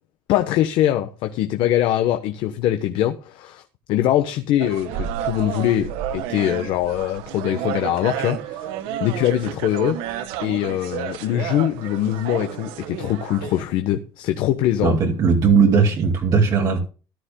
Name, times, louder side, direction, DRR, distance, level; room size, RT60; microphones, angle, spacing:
voice 1, 0.3-3.6 3.9-8.7 9.0-10.0 10.4-15.0, left 12 dB, 60° left, 1.1 m, -22 dB
sound 1, 4.6-13.6, right 10 dB, 90° right, 1.5 m, -31 dB
voice 2, 14.8-16.8, right 5 dB, 40° right, 2.4 m, -17 dB
14.0 x 13.0 x 2.3 m
cardioid pair, 160°, 9 cm